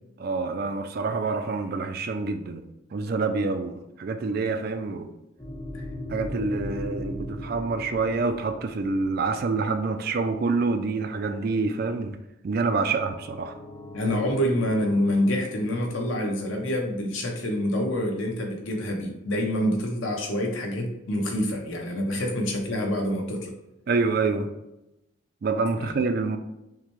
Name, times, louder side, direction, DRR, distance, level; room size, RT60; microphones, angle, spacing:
voice 1, 0.2-2.7 2.9-5.1 6.1-12.2 12.4-13.5 23.9-24.5 25.4-26.4, right 4 dB, 45° right, 0.3 m, -27 dB
sound 1, 5.4-9.8 12.8-16.2, left 1 dB, 25° left, 0.8 m, -38 dB
voice 2, 13.9-23.5 25.8-26.0, equal, 70° left, 0.9 m, -27 dB
5.8 x 2.2 x 3.1 m
head